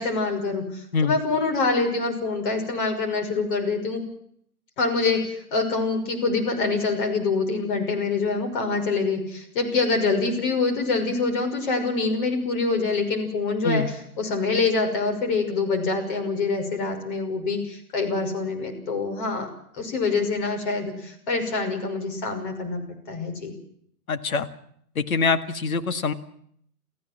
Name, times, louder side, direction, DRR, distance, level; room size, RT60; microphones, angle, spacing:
voice 1, 0.0-4.0 4.8-13.8 14.2-19.5 19.8-23.5, left 3 dB, 35° left, 4 dB, 5.9 m, -25 dB
voice 2, 24.1-24.5 25.0-26.1, left 4 dB, 65° left, 9 dB, 2.0 m, -24 dB
29.0 x 15.5 x 7.6 m, 0.68 s
figure-of-eight pair, 140°, 46 cm